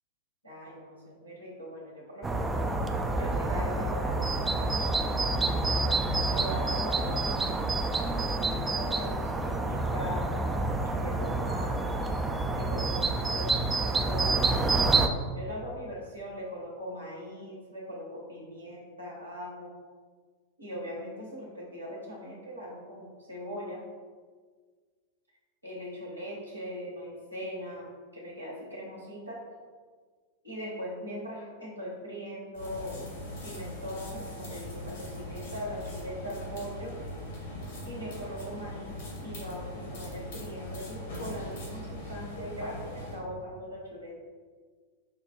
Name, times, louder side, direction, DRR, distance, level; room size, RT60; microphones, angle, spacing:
voice 1, 0.4-2.6 3.2-5.5 6.3-7.7 8.5-10.3 10.8-12.1 12.6-14.7 15.3-19.7 20.6-23.9 25.6-29.4 30.4-33.0 33.4-37.0 37.8-44.2, equal, 90° right, -6 dB, 1.0 m, -40 dB
sound 1, 2.2-15.1, right 3 dB, 15° right, 0.3 m, -28 dB
sound 2, 32.5-43.2, left 1 dB, 60° left, 1.5 m, -40 dB
5.4 x 2.3 x 3.8 m, 1.6 s
figure-of-eight pair, 90°, 0 cm